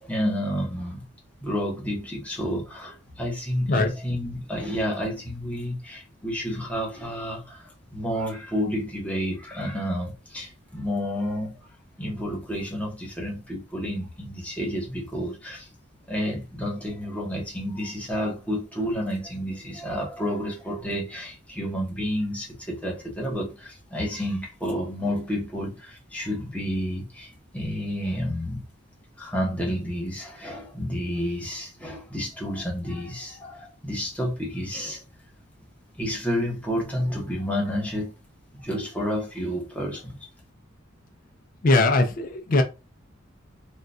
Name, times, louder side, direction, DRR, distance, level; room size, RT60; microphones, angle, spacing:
voice 1, 0.0-1.0 1.4-11.5 12.0-15.7 16.1-28.6 29.2-35.0 36.0-38.1 38.5-40.2, equal, 5° left, 1.0 m, -30 dB
voice 2, 41.6-42.6, left 2 dB, 45° left, 0.5 m, -20 dB
3.7 x 2.3 x 2.6 m
head